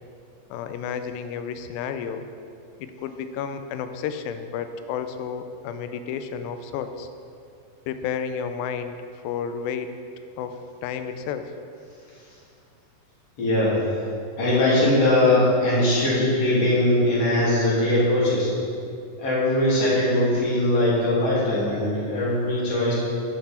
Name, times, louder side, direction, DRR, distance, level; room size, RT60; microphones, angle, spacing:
voice 1, 0.5-2.2 2.8-7.1 7.9-9.0 9.2-9.9 10.4-10.6 10.8-11.5, left 7 dB, 85° left, 9 dB, 2.4 m, -31 dB
voice 2, 13.4-13.8 14.4-18.5 19.2-22.9, left 1 dB, 45° left, -8 dB, 3.5 m, -21 dB
9.9 x 8.1 x 4.3 m, 2.5 s
omnidirectional pair, 4.1 m